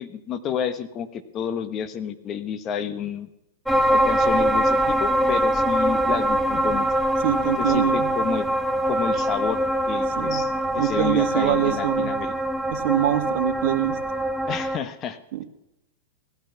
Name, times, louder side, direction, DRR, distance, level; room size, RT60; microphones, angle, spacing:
voice 1, 0.0-3.3 3.9-6.9 7.6-8.5 8.8-9.6 9.9-12.3 14.5-15.2, left 8 dB, 30° left, 11 dB, 1.3 m, -30 dB
sound 1, 3.7-14.8, right 1 dB, ahead, 0.8 m, -23 dB
voice 2, 7.2-8.1 10.2-10.4 10.8-12.1 12.7-14.0 15.3-15.4, right 11 dB, 55° right, 5 dB, 2.0 m, -24 dB
17.5 x 12.0 x 6.0 m, 0.87 s
hypercardioid pair, 115°, 0 cm